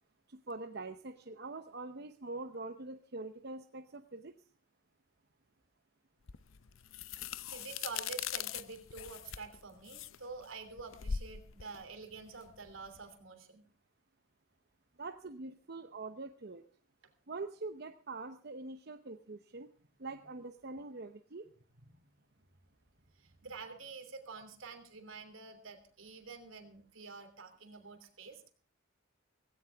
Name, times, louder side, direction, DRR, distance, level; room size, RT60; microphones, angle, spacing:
voice 1, 0.3-4.3 15.0-16.6 17.3-19.7 20.0-21.5, right 3 dB, 55° right, 7 dB, 0.8 m, -44 dB
sound 1, 6.3-13.0, left 8 dB, 90° left, 0.7 m, -42 dB
voice 2, 7.5-13.6 21.9-22.0 23.2-28.5, right 4 dB, 80° right, 7 dB, 3.1 m, -48 dB
17.5 x 17.0 x 3.5 m, 0.41 s
head